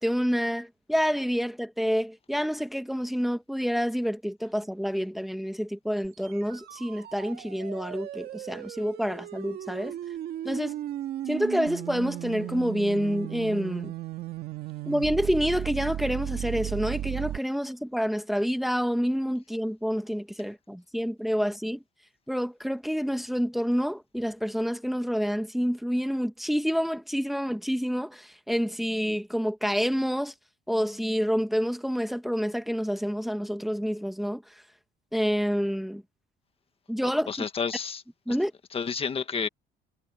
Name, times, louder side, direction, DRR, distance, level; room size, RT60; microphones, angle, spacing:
voice 1, 0.0-10.0 10.4-10.8 11.3-13.9 14.9-21.8 22.3-30.3 30.7-34.6 35.1-36.0 36.9-37.4 38.3-38.5, equal, ahead, 1.6 m, -28 dB
sound 1, 6.0-17.4, right 13 dB, 70° right, 1.9 m, -36 dB
voice 2, 37.3-38.0 38.3-38.4 38.7-39.5, left 6 dB, 35° left, 1.6 m, -30 dB
cardioid pair, 110°, 17 cm